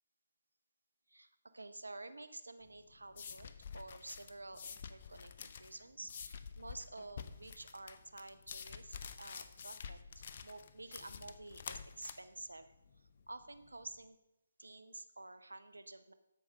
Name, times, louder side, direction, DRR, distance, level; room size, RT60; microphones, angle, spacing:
voice 1, 1.1-12.7 13.0-14.2 14.6-16.1, right 2 dB, 90° right, 11 dB, 0.9 m, -51 dB
sound 1, 2.6-14.0, left 6 dB, 45° left, 0.7 m, -49 dB
13.0 x 5.1 x 5.4 m, 0.95 s
figure-of-eight pair, 145°, 0 cm